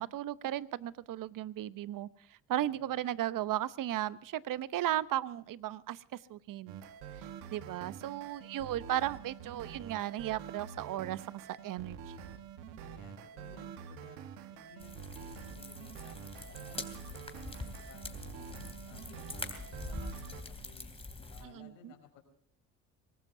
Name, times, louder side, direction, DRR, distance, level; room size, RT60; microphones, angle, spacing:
voice 1, 0.0-2.1 2.5-6.8 7.5-11.2 11.5-12.3 21.4-21.9, right 13 dB, 55° right, 17 dB, 0.9 m, -35 dB
voice 2, 2.6-2.9 12.8-14.2 14.5-18.5 18.9-20.9 21.3-22.2, left 6 dB, 85° left, 4 dB, 5.2 m, -58 dB
sound 1, 6.7-20.4, right 7 dB, 80° right, 1.4 m, -47 dB
sound 2, 14.8-21.4, left 2 dB, 15° left, 3.1 m, -44 dB
24.0 x 18.5 x 2.7 m, 0.64 s
hypercardioid pair, 65°, 39 cm